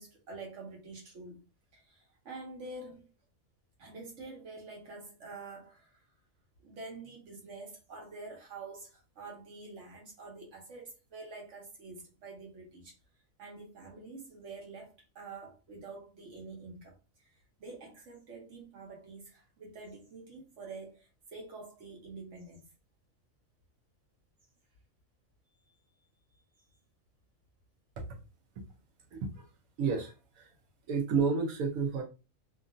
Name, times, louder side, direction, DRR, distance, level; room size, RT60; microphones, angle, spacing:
voice 1, 0.0-1.5 1.7-3.1 3.8-6.0 6.6-13.0 13.4-16.9 17.2-17.3 17.6-22.7 26.3-26.8, right 3 dB, 60° right, 1.3 m, -47 dB
voice 2, 29.1-29.5 29.8-30.5 30.9-32.0, right 5 dB, 85° right, 1.1 m, -31 dB
2.8 x 2.5 x 2.5 m
omnidirectional pair, 1.4 m